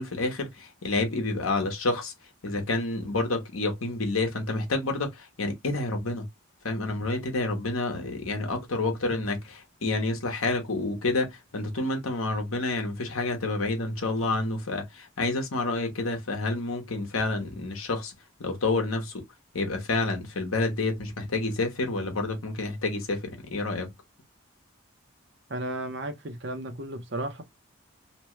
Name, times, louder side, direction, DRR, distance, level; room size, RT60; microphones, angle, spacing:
voice 1, 0.0-2.1 2.4-6.3 6.6-18.1 18.4-19.2 19.5-23.9, left 2 dB, 80° left, 1.0 m, -29 dB
voice 2, 25.5-27.4, right 1 dB, 55° right, 0.7 m, -34 dB
3.0 x 2.2 x 3.0 m
head